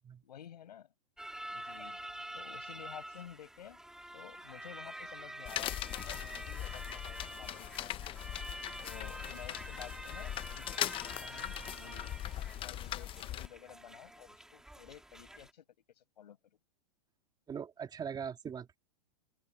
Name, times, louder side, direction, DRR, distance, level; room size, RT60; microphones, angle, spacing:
voice 1, 0.2-0.9 1.5-2.0 2.3-3.8 4.1-5.7 6.0-8.0 8.8-15.6 16.0-16.4, left 10 dB, 90° left, 5.3 m, -52 dB
sound 1, 1.2-15.5, right 1 dB, 5° right, 2.4 m, -47 dB
sound 2, 5.5-13.5, left 12 dB, 25° left, 0.7 m, -40 dB
voice 2, 17.5-18.8, right 7 dB, 20° right, 2.2 m, -40 dB
open air
hypercardioid pair, 130°, 21 cm